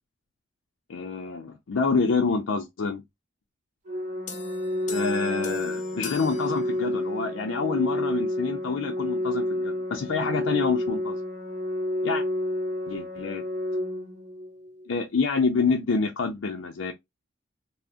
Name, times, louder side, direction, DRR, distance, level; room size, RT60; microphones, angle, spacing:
voice 1, 0.9-3.0 4.9-11.2 12.0-12.2 12.9-13.4 14.9-16.9, left 4 dB, 85° left, 0.5 m, -27 dB
Organ, 3.9-14.9, left 1 dB, 40° right, 0.7 m, -30 dB
sound 1, 4.3-7.3, left 7 dB, 40° left, 0.6 m, -40 dB
3.5 x 2.0 x 2.5 m
head